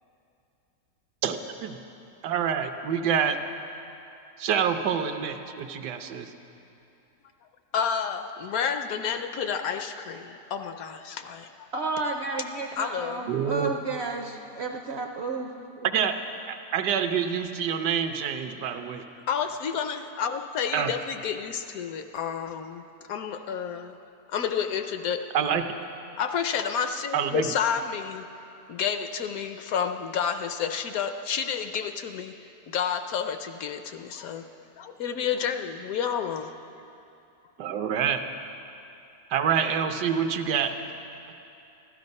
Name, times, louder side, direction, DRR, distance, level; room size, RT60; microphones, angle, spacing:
voice 1, 2.2-3.4 4.4-6.3 13.3-13.7 15.8-16.1 16.5-19.0 20.7-20.9 25.3-25.6 27.1-27.5 37.6-38.2 39.3-40.7, right 8 dB, 80° right, 7 dB, 1.3 m, -26 dB
voice 2, 7.7-11.7 12.8-13.3 19.3-22.8 23.1-23.9 24.3-25.2 26.1-28.2 28.7-32.3 32.7-34.5 34.8-36.5, left 7 dB, 70° left, 8 dB, 0.9 m, -30 dB
voice 3, 11.7-15.9, right 3 dB, 60° right, 3 dB, 0.7 m, -32 dB
14.0 x 12.5 x 5.3 m, 2.7 s
omnidirectional pair, 1.8 m